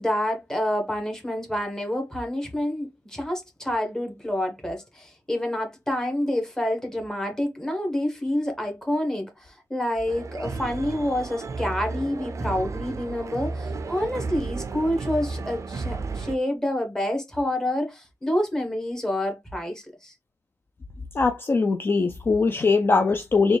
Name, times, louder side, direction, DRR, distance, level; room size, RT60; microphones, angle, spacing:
voice 1, 0.0-20.1, left 1 dB, 10° left, 1.1 m, -28 dB
sound 1, 10.1-16.4, right 4 dB, 60° right, 0.4 m, -33 dB
voice 2, 21.1-23.6, left 4 dB, 40° left, 0.4 m, -21 dB
4.0 x 2.3 x 3.3 m
wide cardioid pair, 125°, 6 cm